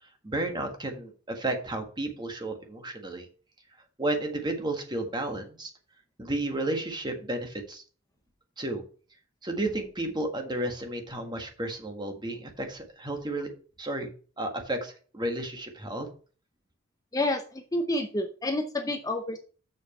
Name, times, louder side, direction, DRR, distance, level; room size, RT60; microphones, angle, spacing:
voice 1, 0.2-3.3 4.0-5.7 6.2-7.8 8.6-8.8 9.4-13.5 13.8-14.1 14.4-16.1, right 1 dB, 25° right, 5 dB, 1.6 m, -32 dB
voice 2, 17.1-19.4, left 1 dB, 20° left, 5 dB, 0.7 m, -29 dB
7.2 x 6.2 x 5.4 m, 0.40 s
head